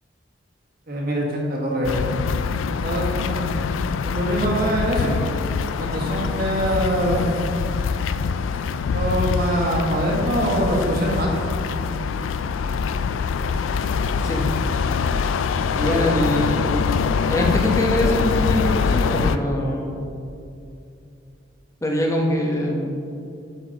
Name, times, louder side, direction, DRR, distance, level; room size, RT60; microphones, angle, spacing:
voice 1, 0.9-2.0 2.8-3.4 4.0-5.2 5.8-7.5 8.9-11.3 15.8-16.0, equal, 50° right, -2 dB, 1.6 m, -23 dB
sound 1, 1.8-19.4, left 5 dB, 75° left, 0.3 m, -24 dB
voice 2, 15.7-16.8 17.3-20.0 21.8-22.9, left 1 dB, 15° left, 0 dB, 0.9 m, -23 dB
8.6 x 7.2 x 4.0 m, 2.6 s
head